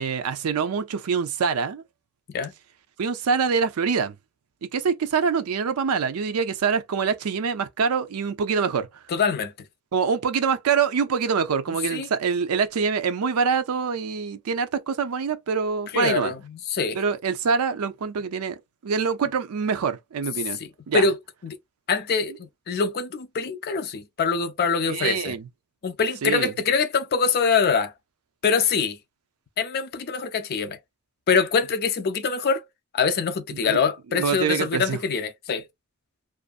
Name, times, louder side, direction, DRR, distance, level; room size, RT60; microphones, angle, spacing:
voice 1, 0.0-1.8 3.0-4.2 4.6-8.9 9.9-16.3 16.9-18.6 18.8-20.6 20.9-21.0 24.9-25.5 26.2-26.5 33.6-33.8 34.1-35.0, right 5 dB, 85° right, 0.5 m, -25 dB
voice 2, 9.1-9.5 11.7-12.1 15.9-17.0 20.6-21.2 21.4-21.6 21.9-25.4 25.8-27.9 28.4-29.0 29.6-30.8 31.3-32.6 32.9-35.7, left 5 dB, 45° left, 0.4 m, -24 dB
2.5 x 2.4 x 2.4 m
head